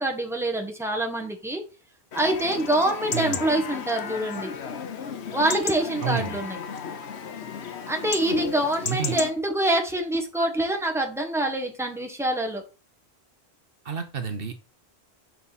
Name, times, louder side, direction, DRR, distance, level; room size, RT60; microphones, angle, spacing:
voice 1, 0.0-1.6 2.1-4.5 5.3-6.6 7.9-12.6, right 1 dB, ahead, 2 dB, 1.4 m, -25 dB
Chatter / Livestock farm animals working animals / Chirp tweet, 2.1-9.3, left 6 dB, 90° left, 1.2 m, -34 dB
voice 2, 8.9-9.2 13.8-14.5, right 6 dB, 65° right, 8 dB, 1.0 m, -29 dB
8.0 x 5.5 x 4.1 m, 0.34 s
omnidirectional pair, 1.1 m